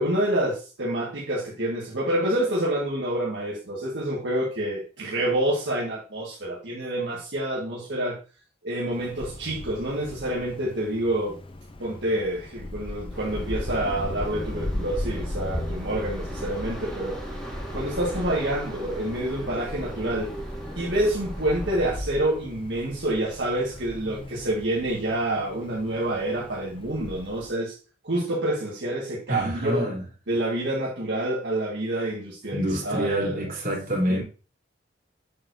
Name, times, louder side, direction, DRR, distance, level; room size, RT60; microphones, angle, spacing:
voice 1, 0.0-8.2 8.6-11.4 11.8-17.2 17.7-20.3 20.8-27.7 28.0-29.9 30.3-33.4 34.1-34.2, right 1 dB, 75° right, 1.7 m, -27 dB
Wind, 8.9-27.5, left 1 dB, 30° left, 0.6 m, -38 dB
sound 1, 13.1-22.0, equal, 5° left, 1.7 m, -36 dB
voice 2, 29.3-30.0 32.5-34.2, equal, 50° right, 3.4 m, -27 dB
7.5 x 6.3 x 2.7 m
head